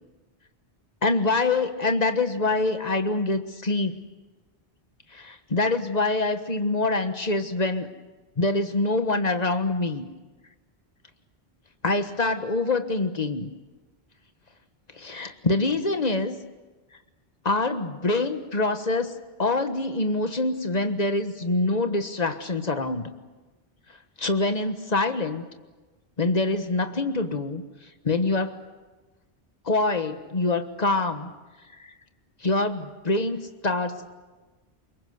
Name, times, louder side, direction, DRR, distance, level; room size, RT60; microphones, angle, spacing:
voice 1, 1.0-4.0 5.1-7.9 8.4-10.1 11.8-13.5 14.9-16.4 17.4-19.1 19.4-23.1 24.2-25.4 26.2-27.6 28.0-28.6 29.6-31.3 31.8-31.9 32.4-33.4 33.6-34.2, left 2 dB, 40° left, 8 dB, 1.5 m, -25 dB
24.5 x 21.5 x 8.1 m, 1.2 s
omnidirectional pair, 1.1 m